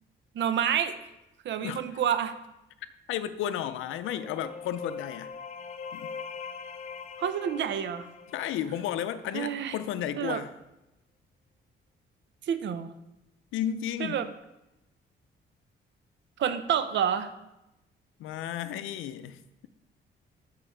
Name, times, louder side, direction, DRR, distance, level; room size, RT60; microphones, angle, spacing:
voice 1, 0.3-1.0 1.4-2.3 7.2-8.1 9.3-9.8 10.2-10.4 12.5-12.9 14.0-14.3 16.4-17.3, right 8 dB, 65° right, 11 dB, 0.7 m, -28 dB
voice 2, 3.1-5.3 5.9-6.1 8.3-10.5 13.5-14.2 18.2-19.7, left 10 dB, 85° left, 13 dB, 0.5 m, -33 dB
sound 1, 3.6-9.3, left 5 dB, 35° left, 0.5 m, -42 dB
8.4 x 4.7 x 4.5 m, 0.93 s
cardioid pair, 90°, 20 cm